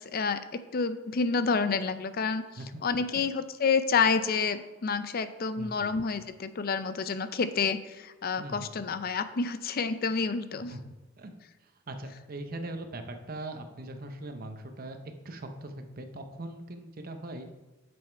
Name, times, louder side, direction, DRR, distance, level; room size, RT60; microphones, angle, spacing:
voice 1, 0.0-2.4 2.8-10.7, left 5 dB, 50° left, 12 dB, 0.5 m, -29 dB
voice 2, 5.6-5.9 8.4-8.7 10.5-10.8 11.2-11.3 11.6-15.0 15.2-17.5, right 2 dB, 50° right, 6 dB, 0.8 m, -41 dB
7.1 x 6.4 x 4.5 m, 1.2 s
head